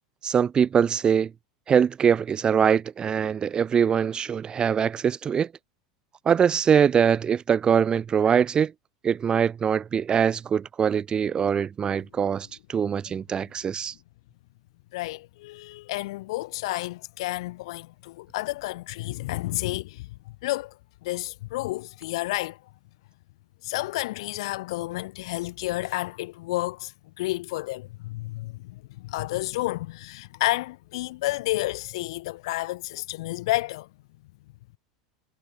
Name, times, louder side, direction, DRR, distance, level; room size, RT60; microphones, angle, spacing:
voice 1, 0.2-1.3 1.7-5.5 6.2-8.7 9.0-13.9, right 7 dB, 30° right, 1.1 m, -23 dB
voice 2, 14.9-20.7 21.0-22.6 23.6-26.9 27.2-33.9, left 19 dB, 65° left, 7.5 m, -31 dB
hypercardioid pair, 85°, 3 cm